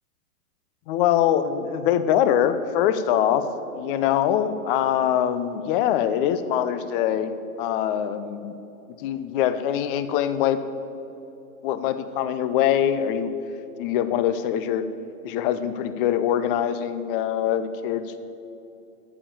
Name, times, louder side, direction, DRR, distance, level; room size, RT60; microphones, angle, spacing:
voice 1, 0.9-3.4 3.8-8.5 9.0-10.6 11.6-13.3 13.8-14.9 15.2-18.2, left 10 dB, 35° left, 12 dB, 0.6 m, -23 dB
9.8 x 7.1 x 7.4 m, 2.9 s
hypercardioid pair, 130°, 46 cm